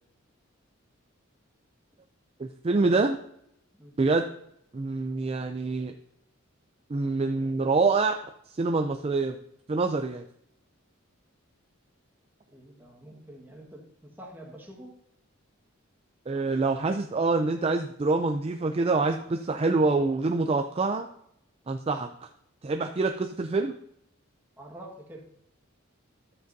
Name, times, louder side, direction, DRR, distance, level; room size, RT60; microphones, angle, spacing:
voice 1, 2.4-3.2 4.0-4.2 4.7-5.9 6.9-8.2 8.6-9.4 9.7-10.2 16.3-21.1 21.7-22.1 22.6-23.8, right 3 dB, 30° right, 5 dB, 0.4 m, -26 dB
voice 2, 12.5-14.9 24.6-25.2, right 1 dB, 10° right, -1 dB, 1.5 m, -46 dB
11.5 x 7.6 x 2.7 m, 0.74 s
head